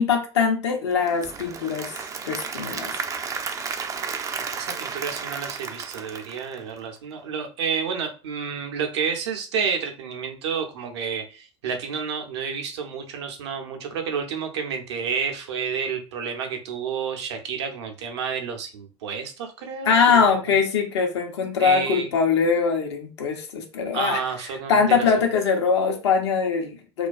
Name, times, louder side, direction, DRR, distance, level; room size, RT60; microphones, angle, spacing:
voice 1, 0.0-1.9 2.2-2.9 19.8-24.2 24.7-27.1, left 5 dB, 70° left, 3 dB, 0.7 m, -22 dB
Applause / Crowd, 0.9-7.0, right 5 dB, 20° right, 0.3 m, -33 dB
voice 2, 4.4-20.2 21.6-22.1 23.9-25.2, right 6 dB, 70° right, 4 dB, 0.6 m, -30 dB
2.3 x 2.2 x 2.4 m, 0.33 s
hypercardioid pair, 80°, 15 cm